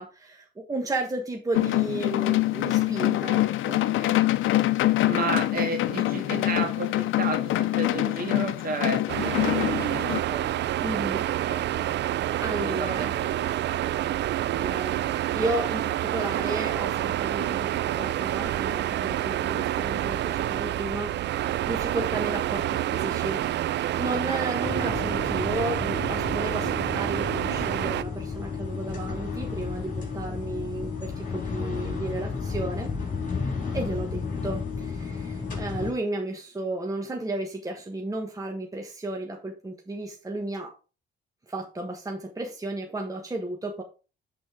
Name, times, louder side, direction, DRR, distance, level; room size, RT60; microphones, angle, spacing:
voice 1, 0.0-3.8 10.8-11.2 12.4-13.1 14.6-23.4 24.0-32.9 33.7-40.7 41.5-43.8, right 2 dB, 15° right, 1 dB, 1.4 m, -33 dB
sound 1, 1.5-10.2, left 16 dB, 80° left, 0.6 m, -25 dB
voice 2, 5.0-10.5 11.4-11.9 12.5-13.8, right 3 dB, 45° right, 3 dB, 2.5 m, -33 dB
sound 2, 9.1-28.0, right 13 dB, 65° right, 0.4 m, -28 dB
sound 3, 24.6-35.9, left 5 dB, 45° left, 4.4 m, -32 dB
7.8 x 4.3 x 4.9 m, 0.33 s
cardioid pair, 90°, 20 cm